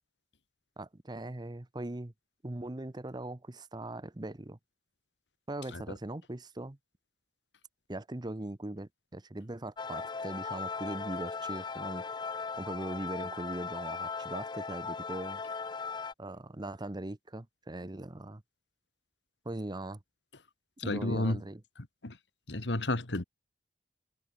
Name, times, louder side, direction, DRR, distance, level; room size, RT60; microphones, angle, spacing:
voice 1, 0.8-2.1 2.4-4.6 5.5-6.8 7.9-12.0 12.6-15.4 16.2-18.4 19.4-20.0 20.8-21.6, right 1 dB, 25° right, 0.8 m, -40 dB
sound 1, 9.8-16.1, left 5 dB, 25° left, 0.5 m, -38 dB
voice 2, 20.8-21.4 21.8-22.2 22.5-23.2, left 2 dB, 85° left, 1.9 m, -32 dB
head